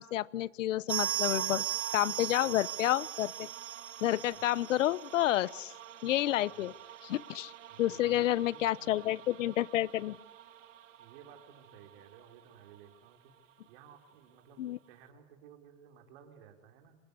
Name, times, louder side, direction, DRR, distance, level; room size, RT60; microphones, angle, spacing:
voice 1, 0.0-1.6 1.9-3.5 4.0-5.7 6.0-6.7 7.0-7.5 7.8-10.2 14.6-14.8, left 14 dB, 80° left, 22 dB, 0.8 m, -30 dB
sound 1, 0.9-11.4 11.7-11.8 12.0-12.1 12.7-12.8, right 12 dB, 85° right, 2.0 m, -40 dB
voice 2, 2.2-2.6 6.5-6.7 7.7-9.1 11.0-13.3 13.7-17.0, right 8 dB, 50° right, 5 dB, 4.5 m, -56 dB
26.5 x 18.5 x 9.8 m, 1.0 s
supercardioid pair, 150°, 37 cm